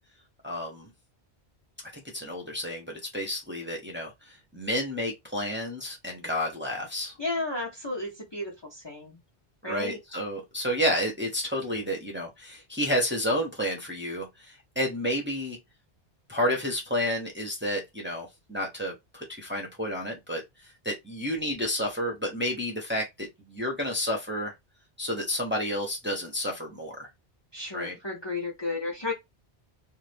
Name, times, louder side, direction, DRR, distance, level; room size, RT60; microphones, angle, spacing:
voice 1, 0.4-0.9 1.9-7.1 9.7-15.6 16.3-20.4 20.8-24.5 25.0-27.0 27.7-28.0, equal, 10° right, 0.8 m, -30 dB
voice 2, 7.2-9.2 9.6-10.0 27.5-29.1, left 2 dB, 25° left, 0.8 m, -33 dB
2.6 x 2.5 x 3.4 m
omnidirectional pair, 1.1 m